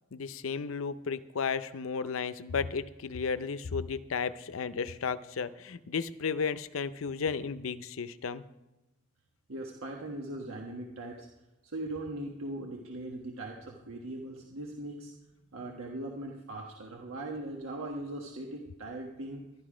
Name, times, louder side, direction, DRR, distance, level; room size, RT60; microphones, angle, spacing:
voice 1, 0.1-8.4, left 5 dB, 75° left, 14 dB, 0.6 m, -33 dB
voice 2, 9.5-11.3 11.6-15.1 15.5-19.4, right 1 dB, 90° right, 0 dB, 1.3 m, -40 dB
12.0 x 11.5 x 5.0 m, 1.0 s
head